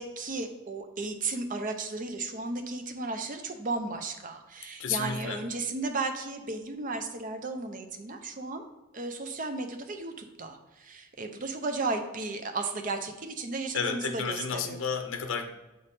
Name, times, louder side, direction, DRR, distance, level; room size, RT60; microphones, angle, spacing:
voice 1, 0.0-8.6 8.9-14.8, right 3 dB, 40° right, 6 dB, 0.6 m, -34 dB
voice 2, 4.8-5.4 13.7-15.5, left 6 dB, 80° left, 6 dB, 0.6 m, -32 dB
7.7 x 3.5 x 4.1 m, 1.1 s
head